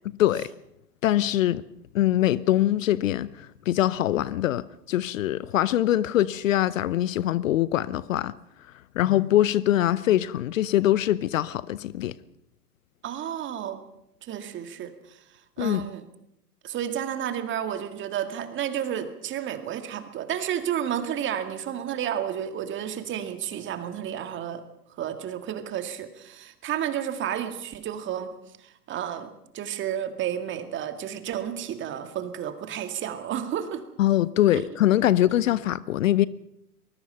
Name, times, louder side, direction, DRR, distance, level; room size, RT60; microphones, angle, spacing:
voice 1, 1.0-1.6 1.9-8.3 9.0-12.1 15.6-15.8 34.0-36.3, left 13 dB, 55° left, 19 dB, 0.8 m, -23 dB
voice 2, 13.0-13.8 14.2-15.2 15.6-16.0 16.6-24.6 25.0-28.3 28.6-33.8 34.5-34.6, right 10 dB, 25° right, 9 dB, 2.1 m, -31 dB
23.5 x 20.5 x 5.6 m, 0.78 s
figure-of-eight pair, 110°, 48 cm